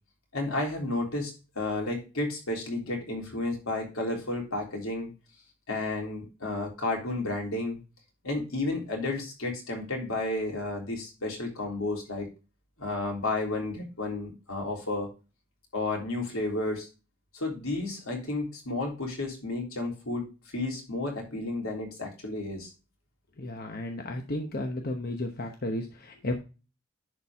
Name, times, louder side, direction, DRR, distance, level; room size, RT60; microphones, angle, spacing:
voice 1, 0.3-5.1 5.7-7.8 8.2-12.3 12.8-15.1 15.7-16.9 17.3-22.7, left 2 dB, 80° left, 0 dB, 3.4 m, -32 dB
voice 2, 23.4-26.4, left 1 dB, 45° left, 4 dB, 0.9 m, -33 dB
11.0 x 4.4 x 3.5 m, 0.31 s
head